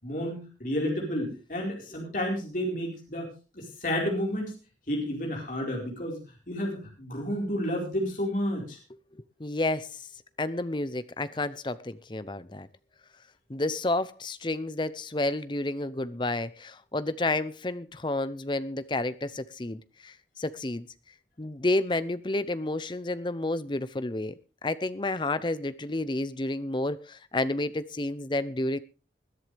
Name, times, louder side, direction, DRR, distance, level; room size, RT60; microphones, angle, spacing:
voice 1, 0.0-4.5 4.9-6.2 6.5-8.8, equal, 50° left, 0 dB, 4.6 m, -31 dB
voice 2, 9.4-9.9 10.4-12.7 13.5-20.9 21.4-24.3 24.6-28.8, left 2 dB, 25° left, 14 dB, 0.7 m, -30 dB
21.0 x 11.0 x 3.4 m, 0.32 s
head